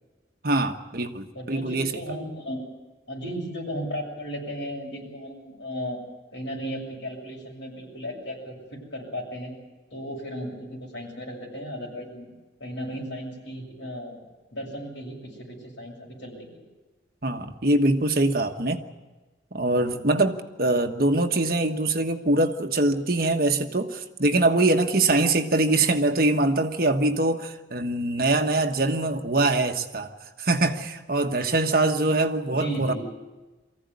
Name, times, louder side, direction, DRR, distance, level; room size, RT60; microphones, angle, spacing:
voice 1, 0.4-2.0 17.2-18.8 19.5-30.1 30.4-32.9, right 2 dB, 50° right, 6 dB, 1.3 m, -23 dB
voice 2, 1.3-2.6 3.1-6.0 6.3-9.6 9.9-12.3 12.6-14.2 14.5-16.6 32.5-33.0, equal, 85° left, 0 dB, 7.2 m, -35 dB
23.5 x 15.5 x 9.6 m, 1.2 s
head